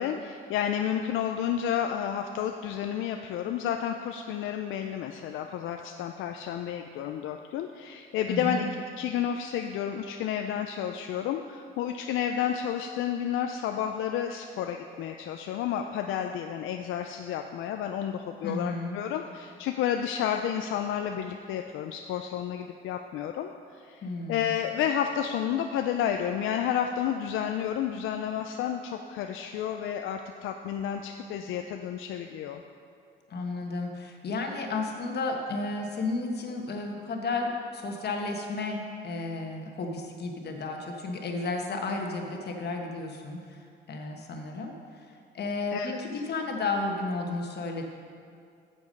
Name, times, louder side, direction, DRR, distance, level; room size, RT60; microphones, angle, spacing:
voice 1, 0.0-8.7 9.0-32.6 45.7-46.0, left 9 dB, 85° left, 5 dB, 0.4 m, -31 dB
voice 2, 8.3-8.7 18.4-19.0 24.0-24.5 33.3-43.6 43.9-44.7 45.3-47.8, left 3 dB, 55° left, 2 dB, 1.3 m, -32 dB
8.3 x 7.1 x 5.3 m, 2.3 s
cardioid pair, 90°, 20 cm